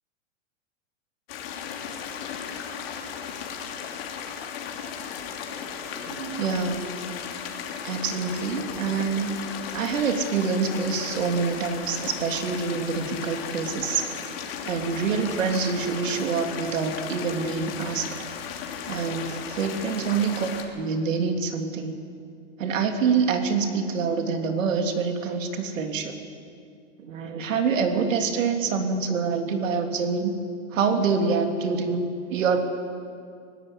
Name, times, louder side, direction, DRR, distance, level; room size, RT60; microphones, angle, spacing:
sound 1, 1.3-20.6, left 7 dB, 50° left, 2.8 m, -36 dB
voice 1, 5.9-6.8 7.8-9.4 9.7-14.0 14.6-18.1 18.9-20.5 20.8-21.9 22.6-26.2 27.0-30.3 30.7-32.6, right 5 dB, 85° right, 5 dB, 3.0 m, -26 dB
19.0 x 16.5 x 9.9 m, 2.3 s
supercardioid pair, 165°, 38 cm